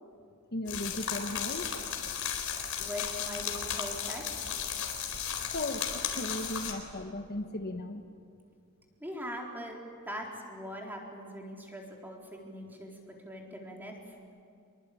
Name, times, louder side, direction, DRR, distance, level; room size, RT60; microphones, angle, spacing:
voice 1, 0.5-2.0 2.3-2.7 4.1-4.2 4.8-5.0 5.3-8.0, left 1 dB, 45° left, 5 dB, 1.3 m, -38 dB
sound 1, 0.7-6.7, left 8 dB, 70° left, 4.1 m, -35 dB
voice 2, 2.8-4.5 9.0-9.8 10.0-12.9 13.2-14.0, equal, 10° right, -1 dB, 4.1 m, -41 dB
26.0 x 23.0 x 8.7 m, 2.4 s
head